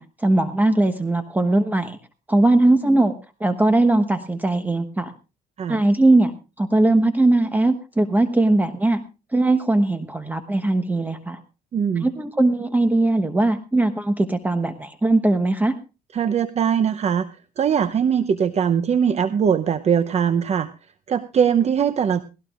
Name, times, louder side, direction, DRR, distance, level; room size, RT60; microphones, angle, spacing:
voice 1, 0.0-2.0 2.3-3.1 3.4-5.1 5.7-9.0 9.3-11.4 12.0-15.8, right 2 dB, 10° right, 8 dB, 1.1 m, -20 dB
voice 2, 11.7-12.1 16.1-17.3 17.6-20.7 21.1-22.2, right 7 dB, 40° right, 12 dB, 0.8 m, -21 dB
18.5 x 17.5 x 2.5 m, 0.31 s
cardioid pair, 110°, 17 cm